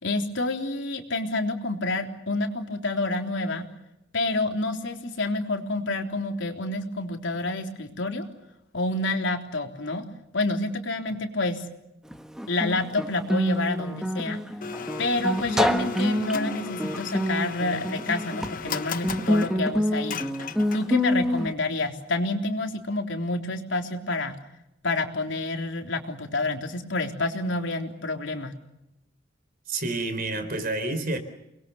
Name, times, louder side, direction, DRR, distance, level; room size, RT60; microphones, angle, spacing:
voice 1, 0.0-3.7 4.1-8.3 8.7-10.0 10.3-11.7 12.5-14.4 15.0-20.2 20.7-24.4 24.8-28.5, left 2 dB, 75° left, 3 dB, 3.6 m, -28 dB
Guitar, 12.1-21.5, equal, 5° right, 1.4 m, -27 dB
Domestic sounds home sounds, 14.6-21.1, left 6 dB, 45° left, 1.0 m, -37 dB
voice 2, 29.7-31.2, right 2 dB, 50° right, 10 dB, 4.1 m, -29 dB
30.0 x 22.0 x 7.1 m, 0.87 s
head